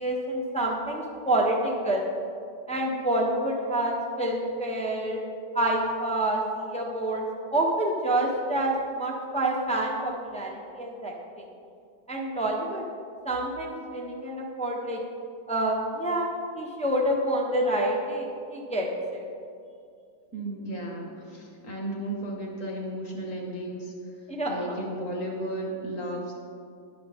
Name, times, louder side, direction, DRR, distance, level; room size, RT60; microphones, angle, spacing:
voice 1, 0.0-2.0 2.7-5.2 5.5-7.2 7.5-11.4 12.1-12.8 13.2-15.0 15.5-16.3 16.5-19.2 24.3-24.6, right 1 dB, 10° left, -1 dB, 0.3 m, -27 dB
voice 2, 20.3-23.9 24.5-26.3, right 1 dB, 40° left, -1 dB, 2.1 m, -34 dB
19.5 x 6.8 x 3.6 m, 2.4 s
omnidirectional pair, 2.3 m